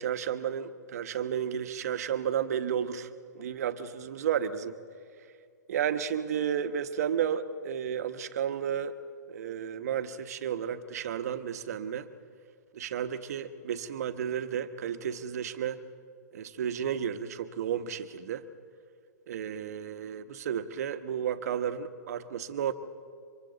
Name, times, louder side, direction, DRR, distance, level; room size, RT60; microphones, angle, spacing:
voice 1, 0.0-3.1 3.3-4.8 5.7-8.9 9.3-12.1 12.7-15.8 16.3-18.5 19.3-22.7, right 8 dB, 55° right, 10 dB, 1.1 m, -32 dB
29.5 x 25.0 x 4.0 m, 2.3 s
hypercardioid pair, 130°, 10 cm